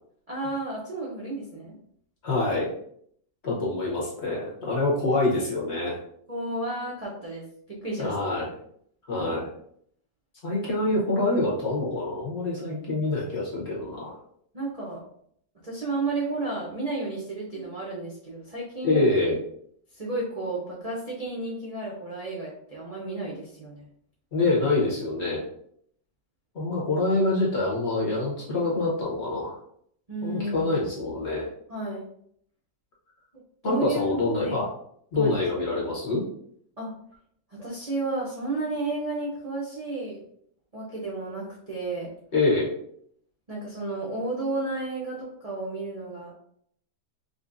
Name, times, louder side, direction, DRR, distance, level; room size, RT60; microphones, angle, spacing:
voice 1, 0.3-1.8 6.3-8.1 14.5-15.0 15.6-19.0 19.9-23.9 30.1-30.7 31.7-32.1 33.6-34.6 35.1-35.4 36.8-36.9 37.5-40.2 40.7-42.1 43.5-46.3, right 2 dB, 70° right, -5 dB, 0.3 m, -32 dB
voice 2, 2.2-2.7 3.4-6.0 8.0-8.5 9.1-9.5 10.4-14.2 17.5-17.6 18.8-19.4 24.3-25.4 26.5-29.5 30.2-31.5 33.6-34.7 35.1-36.2 42.3-42.7, left 2 dB, 45° left, -4 dB, 1.1 m, -26 dB
5.3 x 2.2 x 2.5 m, 0.67 s
omnidirectional pair, 1.8 m